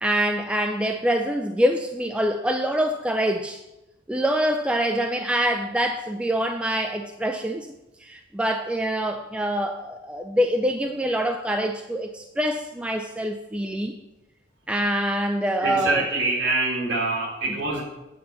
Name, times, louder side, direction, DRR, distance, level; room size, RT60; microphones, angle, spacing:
voice 1, 0.0-3.6 4.1-7.7 8.0-13.9 14.7-16.0, equal, 5° right, 5 dB, 0.3 m, -25 dB
voice 2, 15.6-17.8, right 2 dB, 60° right, -4 dB, 3.0 m, -25 dB
8.7 x 4.0 x 6.8 m, 0.97 s
head